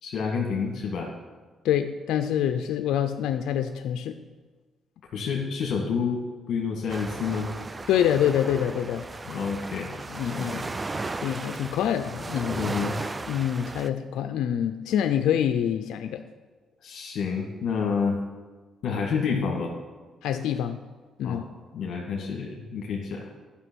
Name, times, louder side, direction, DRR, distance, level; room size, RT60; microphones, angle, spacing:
voice 1, 0.0-1.1 5.1-6.2 6.5-7.5 9.3-9.9 10.3-10.7 12.5-13.0 16.8-18.2 18.8-19.7 21.2-21.4 21.7-23.2, left 5 dB, 70° left, -1 dB, 1.7 m, -29 dB
voice 2, 1.6-4.2 7.9-9.0 10.1-10.6 11.2-12.6 13.3-16.2 20.2-20.8 21.2-21.4, left 9 dB, 85° left, 7 dB, 0.5 m, -26 dB
sound 1, 6.9-13.9, right 3 dB, 25° right, 0.5 m, -35 dB
11.5 x 5.8 x 6.2 m, 1.4 s
cardioid pair, 90°, 0 cm